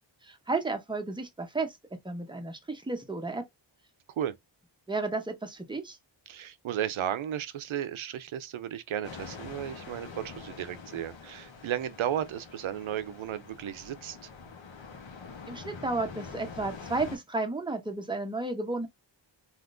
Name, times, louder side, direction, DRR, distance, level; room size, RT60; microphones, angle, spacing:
voice 1, 0.2-1.8 2.0-3.4 4.9-6.0 15.5-18.9, right 3 dB, 10° right, 0.7 m, -32 dB
voice 2, 6.3-14.2, right 10 dB, 85° right, 0.6 m, -34 dB
sound 1, 9.0-17.2, left 5 dB, 70° left, 0.9 m, -45 dB
3.5 x 2.5 x 2.5 m
wide cardioid pair, 115°, 46 cm